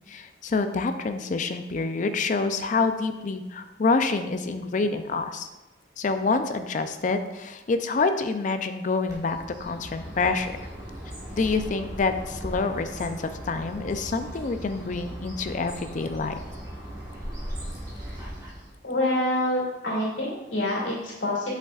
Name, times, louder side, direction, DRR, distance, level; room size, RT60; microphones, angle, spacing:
voice 1, 0.1-5.5 6.0-10.5 11.3-16.3, left 4 dB, 40° left, 9 dB, 0.4 m, -27 dB
Bird, 9.1-18.8, equal, 20° right, 1.4 m, -38 dB
voice 2, 18.8-21.5, left 1 dB, 80° left, -5 dB, 2.3 m, -26 dB
8.1 x 5.7 x 2.4 m, 1.0 s
head